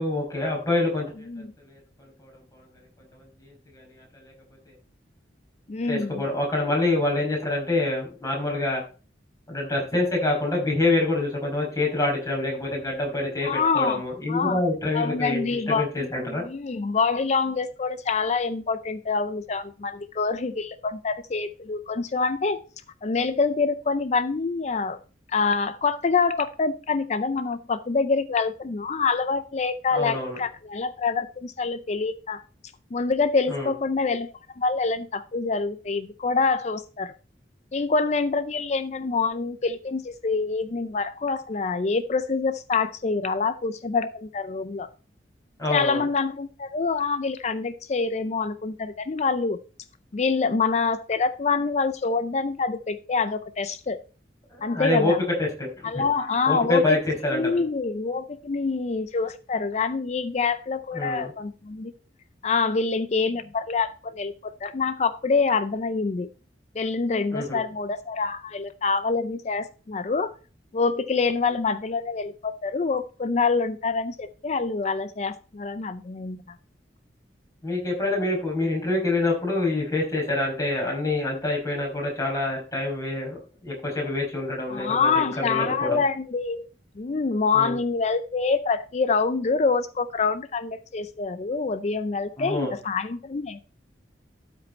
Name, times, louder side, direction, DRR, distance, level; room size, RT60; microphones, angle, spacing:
voice 1, 0.0-1.3 1.7-1.8 2.2-2.6 3.1-4.3 4.7-4.8 5.9-8.8 9.5-16.4 29.9-30.4 33.5-33.7 45.6-46.0 54.5-55.1 55.4-56.1 56.5-57.6 60.9-61.3 67.3-67.6 77.6-85.1 85.4-86.0 87.5-87.8 92.4-92.7, left 2 dB, 20° left, -2 dB, 5.2 m, -26 dB
voice 2, 5.7-6.2 13.4-14.0 14.3-14.6 14.9-15.9 16.4-22.6 23.0-25.0 25.3-32.4 32.9-37.1 37.7-44.9 45.7-49.6 50.1-54.0 54.6-55.2 55.8-57.0 57.3-61.9 62.4-66.3 66.7-70.3 70.7-76.6 84.7-86.7 87.0-93.6, left 4 dB, 40° left, 12 dB, 0.4 m, -26 dB
12.5 x 5.3 x 4.1 m, 0.36 s
head